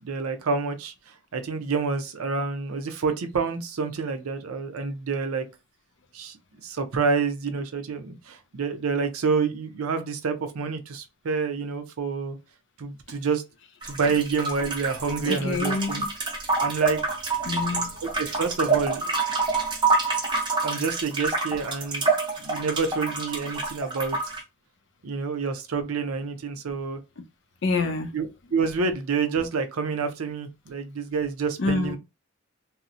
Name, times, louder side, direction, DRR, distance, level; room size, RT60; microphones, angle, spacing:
voice 1, 0.0-5.4 6.1-6.4 6.6-12.4 12.8-13.4 13.8-16.0 16.6-17.0 18.2-19.1 20.6-22.1 22.4-24.2 25.0-27.0 28.1-32.0, right 5 dB, 85° right, 0.5 m, -28 dB
sound 1, 13.8-24.4, right 3 dB, 20° right, 0.5 m, -27 dB
voice 2, 15.2-16.1 17.4-18.0 27.6-28.1 31.6-32.0, left 3 dB, 55° left, 0.5 m, -27 dB
2.7 x 2.0 x 2.4 m
head